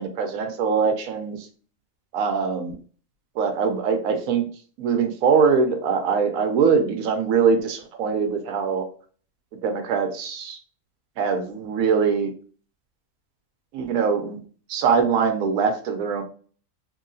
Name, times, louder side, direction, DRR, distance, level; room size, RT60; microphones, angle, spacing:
voice 1, 0.0-1.5 2.1-2.8 3.4-4.5 4.8-8.9 9.6-10.6 11.2-12.3 13.7-14.4 14.7-16.2, right 6 dB, 85° right, 6 dB, 1.0 m, -22 dB
3.0 x 2.7 x 2.6 m, 0.41 s
omnidirectional pair, 1.4 m